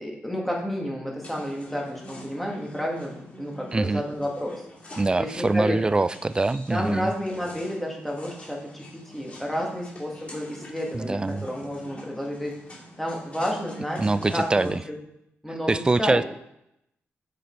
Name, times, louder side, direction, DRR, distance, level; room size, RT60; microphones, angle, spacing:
voice 1, 0.0-5.8 6.7-12.6 13.0-14.0 14.3-15.0 15.4-16.2, equal, 5° left, -2 dB, 2.1 m, -31 dB
sound 1, 1.2-14.7, equal, 30° left, 2.5 m, -45 dB
voice 2, 3.7-4.0 5.0-7.1 10.9-11.5 14.0-14.8 15.7-16.2, right 3 dB, 20° right, 16 dB, 0.3 m, -24 dB
7.5 x 6.7 x 4.6 m, 0.79 s
cardioid pair, 110°, 5 cm